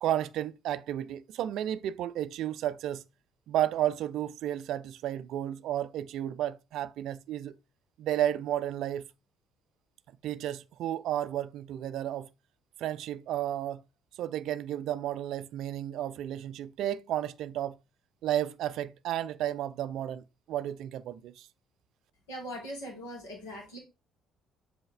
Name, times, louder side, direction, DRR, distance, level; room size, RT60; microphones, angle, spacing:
voice 1, 0.0-3.0 3.5-7.5 8.0-9.0 10.2-12.3 12.8-13.8 14.2-17.8 18.2-21.5, right 12 dB, 60° right, 0.4 m, -32 dB
voice 2, 22.3-23.8, equal, 75° left, 2.5 m, -40 dB
7.7 x 4.0 x 3.3 m
figure-of-eight pair, 50°, 0 cm